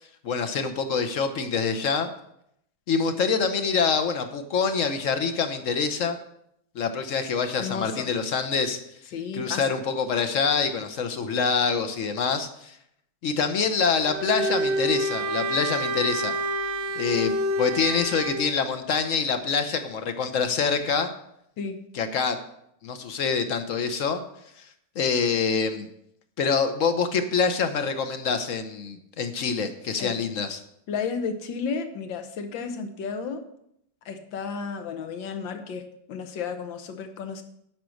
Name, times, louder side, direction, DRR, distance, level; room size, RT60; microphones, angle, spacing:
voice 1, 0.2-2.1 2.9-6.2 6.7-8.8 9.3-12.8 13.2-16.3 17.0-21.1 21.9-22.4 22.8-24.2 24.9-25.9 26.4-30.6, left 5 dB, 55° left, 8 dB, 1.0 m, -25 dB
voice 2, 7.6-8.1 9.1-9.6 21.6-21.8 30.0-30.1 30.9-33.4 34.1-35.8 36.1-37.4, left 5 dB, 75° left, 7 dB, 1.7 m, -32 dB
Bowed string instrument, 14.0-18.5, right 1 dB, 80° right, 1.4 m, -28 dB
9.2 x 5.9 x 6.4 m, 0.75 s
omnidirectional pair, 2.1 m